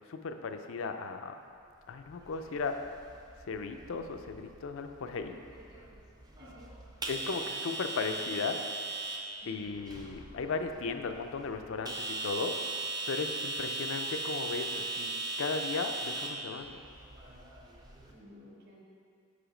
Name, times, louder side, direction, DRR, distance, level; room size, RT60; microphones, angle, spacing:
voice 1, 0.1-1.3 1.9-2.8 3.4-5.4 7.1-8.6 9.5-12.6 13.1-16.8, left 4 dB, 65° left, 7 dB, 0.4 m, -36 dB
sound 1, 2.0-18.1, right 2 dB, 20° right, 0.5 m, -39 dB
voice 2, 5.5-6.0 6.4-6.7 9.4-9.9 18.1-18.8, left 1 dB, 45° right, -2 dB, 1.0 m, -54 dB
5.6 x 4.9 x 5.0 m, 2.4 s
head